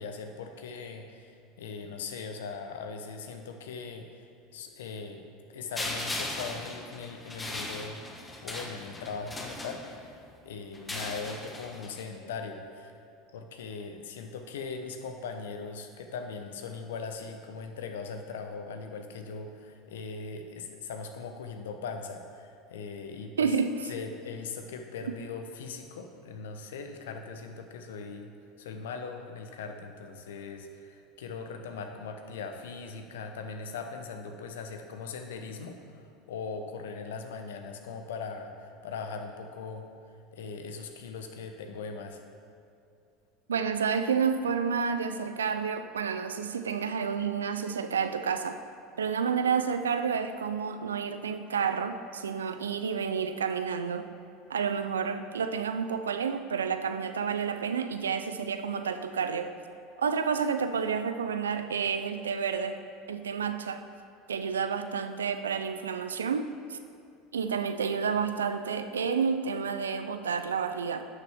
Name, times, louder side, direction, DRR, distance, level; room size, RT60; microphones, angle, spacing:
voice 1, 0.0-4.2 4.5-5.2 5.5-8.0 8.4-10.2 10.4-12.9 13.3-23.5 23.8-28.3 28.6-39.9 40.3-42.2, left 5 dB, 80° left, 5 dB, 0.8 m, -40 dB
sound 1, 5.7-10.2 10.7-12.0, left 2 dB, 15° left, 1.3 m, -38 dB
voice 2, 23.4-23.7 43.5-48.6 49.0-54.1 54.5-59.5 60.0-62.8 63.1-63.8 64.3-66.8 67.3-71.1, right 6 dB, 90° right, 9 dB, 0.4 m, -30 dB
11.0 x 6.7 x 3.5 m, 2.5 s
hypercardioid pair, 80°, 0 cm